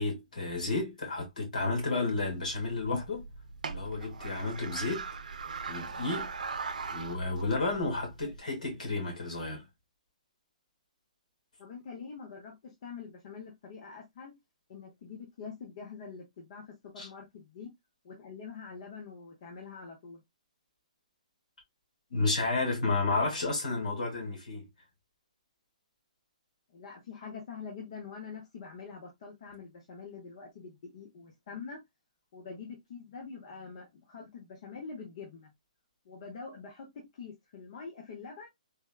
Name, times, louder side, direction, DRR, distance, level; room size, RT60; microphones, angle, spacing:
voice 1, 0.0-3.2 3.7-5.0 5.7-6.3 6.9-9.6 17.0-17.1 22.1-24.7, left 3 dB, 80° left, 1.7 m, -31 dB
sound 1, 2.1-8.4, right 5 dB, 90° right, 0.5 m, -40 dB
voice 2, 11.6-14.3 14.7-17.7 18.0-20.2 26.7-31.8 32.3-35.5 36.0-38.5, left 5 dB, 50° left, 0.7 m, -45 dB
3.4 x 2.2 x 2.2 m
hypercardioid pair, 145°, 4 cm